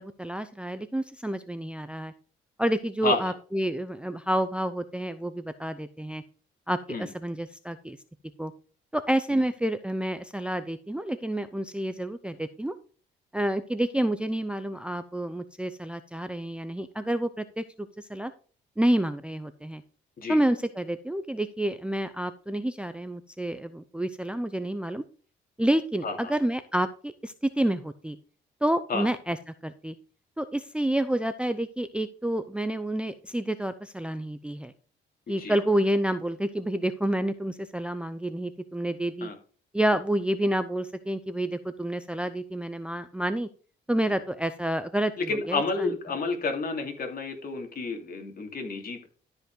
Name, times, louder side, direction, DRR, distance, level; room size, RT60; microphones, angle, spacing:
voice 1, 0.0-2.1 2.6-6.2 6.7-8.0 8.4-8.5 8.9-12.8 13.3-18.3 18.8-19.8 20.3-25.0 25.6-28.2 28.6-29.4 29.6-29.9 30.4-34.7 35.3-39.3 39.7-43.5 43.9-45.1 45.5-45.9, right 1 dB, 5° right, 11 dB, 0.6 m, -29 dB
voice 2, 3.0-3.3 6.9-7.1 9.3-9.4 20.2-20.4 26.0-26.3 28.9-29.1 35.4-35.6 39.2-39.3 45.2-49.1, left 3 dB, 50° left, 3 dB, 2.7 m, -30 dB
12.5 x 5.3 x 3.8 m, 0.39 s
cardioid pair, 90°, 20 cm